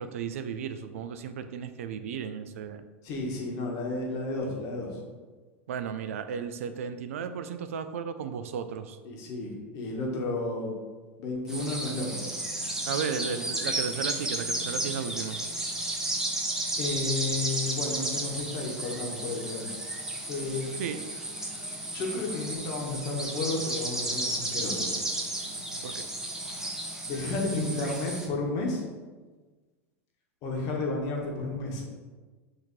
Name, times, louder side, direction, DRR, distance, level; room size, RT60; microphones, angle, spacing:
voice 1, 0.0-2.9 5.7-9.0 12.9-15.4 20.8-21.1 25.8-26.1, right 7 dB, 75° right, 10 dB, 0.3 m, -34 dB
voice 2, 3.0-5.0 9.0-10.7 11.2-12.3 16.8-19.7 20.3-20.7 21.9-25.0 26.5-26.7 27.1-28.8 30.4-31.8, left 2 dB, 50° left, -1 dB, 1.2 m, -32 dB
sound 1, 11.5-28.3, right 1 dB, 5° right, 0.7 m, -33 dB
5.6 x 2.9 x 3.1 m, 1.4 s
hypercardioid pair, 100°, 7 cm